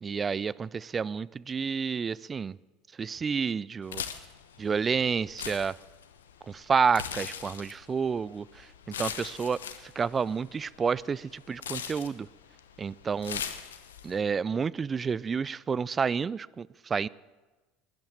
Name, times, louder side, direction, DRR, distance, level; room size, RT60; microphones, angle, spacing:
voice 1, 0.0-2.6 3.0-4.0 4.6-5.8 6.5-12.3 12.8-13.4 14.0-17.1, right 6 dB, 30° right, 21 dB, 0.3 m, -30 dB
sound 1, 3.8-14.2, left 8 dB, 80° left, 0.9 m, -41 dB
12.5 x 11.0 x 7.5 m, 1.2 s
hypercardioid pair, 70°, 0 cm